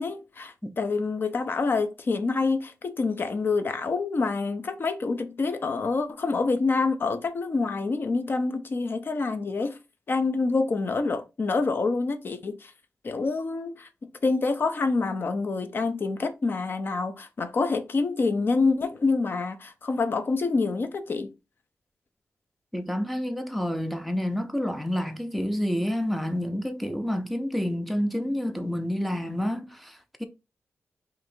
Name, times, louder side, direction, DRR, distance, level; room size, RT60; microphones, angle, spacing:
voice 1, 0.0-9.8 10.1-12.7 13.0-13.9 14.2-21.3, left 3 dB, 45° left, 0.6 m, -27 dB
voice 2, 22.7-30.2, equal, ahead, 0.5 m, -29 dB
2.7 x 2.5 x 4.2 m
cardioid pair, 85°, 5 cm